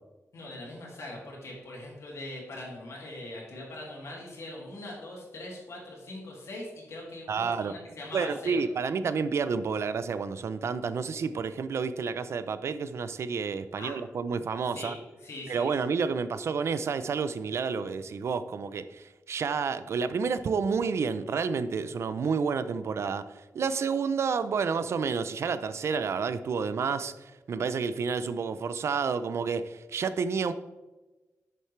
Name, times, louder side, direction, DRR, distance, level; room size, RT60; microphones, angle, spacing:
voice 1, 0.3-8.6 13.8-13.9 14.7-15.7, left 1 dB, 65° left, -3 dB, 2.4 m, -41 dB
voice 2, 7.3-7.7 8.1-14.9 15.5-23.2 23.5-30.5, right 5 dB, 60° right, 13 dB, 0.5 m, -30 dB
10.5 x 6.6 x 3.2 m, 1.2 s
wide cardioid pair, 165°, 5 cm